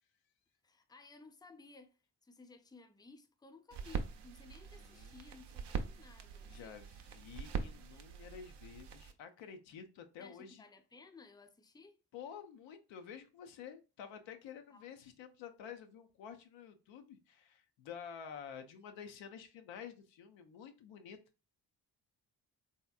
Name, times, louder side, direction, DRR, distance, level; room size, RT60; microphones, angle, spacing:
voice 1, 0.6-6.8 10.2-12.0 14.7-14.9, left 4 dB, 10° left, 0.5 m, -58 dB
sound 1, 3.7-9.1, right 6 dB, 65° right, 0.6 m, -43 dB
voice 2, 4.8-5.1 6.5-10.6 12.1-21.2, left 7 dB, 85° left, 0.6 m, -50 dB
3.3 x 2.8 x 2.3 m
supercardioid pair, 45°, 44 cm